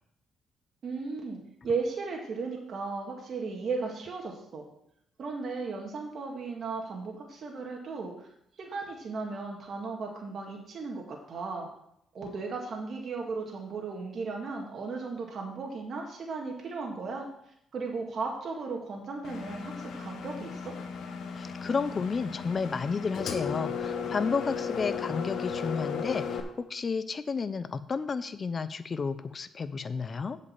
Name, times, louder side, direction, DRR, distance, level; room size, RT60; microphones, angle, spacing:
voice 1, 0.8-4.7 5.2-8.3 8.6-11.7 12.1-17.3 17.7-20.7, right 4 dB, 55° right, 0 dB, 2.0 m, -36 dB
Engine, 19.2-26.4, left 6 dB, 75° left, 1.3 m, -35 dB
voice 2, 21.4-30.4, left 5 dB, 40° left, 13 dB, 0.7 m, -32 dB
8.0 x 5.4 x 7.4 m, 0.74 s
cardioid pair, 90°, 0 cm